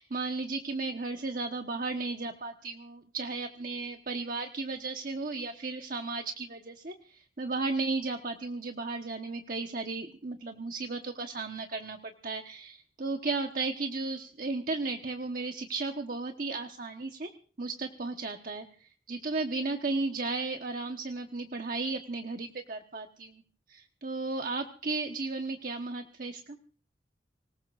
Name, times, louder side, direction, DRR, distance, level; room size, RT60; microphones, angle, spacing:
voice 1, 0.0-17.3 17.6-23.4 23.7-26.6, right 3 dB, 50° right, 5 dB, 1.2 m, -35 dB
25.0 x 20.0 x 2.6 m, 0.42 s
head